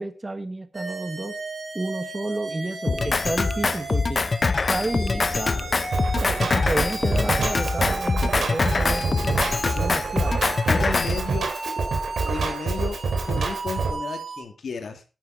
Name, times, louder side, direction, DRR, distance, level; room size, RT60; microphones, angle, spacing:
voice 1, 0.0-1.3 1.7-4.2 4.7-5.8 6.2-9.4 9.7-10.5, right 2 dB, 25° right, 9 dB, 1.4 m, -31 dB
sound 1, 0.7-14.4, right 3 dB, 60° right, 4.2 m, -35 dB
Drum kit, 2.9-11.2, left 4 dB, 45° left, 0.7 m, -24 dB
Drum kit 2, 5.9-13.9, right 4 dB, 80° right, 3.1 m, -27 dB
voice 2, 10.5-11.5 12.2-15.0, left 5 dB, 80° left, 5 dB, 2.5 m, -33 dB
11.0 x 9.5 x 4.9 m, 0.32 s
wide cardioid pair, 100°, 0 cm